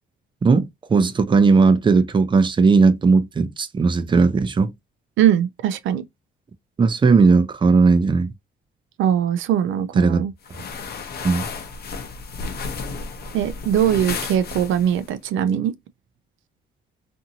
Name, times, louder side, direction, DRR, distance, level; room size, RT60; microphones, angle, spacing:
voice 1, 0.4-4.7 6.8-8.3 10.0-10.2 11.2-11.5, right 4 dB, 25° right, 0.5 m, -17 dB
voice 2, 5.2-6.0 9.0-10.3 13.3-15.7, right 10 dB, 75° right, 0.4 m, -21 dB
sound 1, 10.4-15.1, left 4 dB, 55° left, 0.7 m, -32 dB
2.7 x 2.6 x 2.7 m
cardioid pair, 90°, 20 cm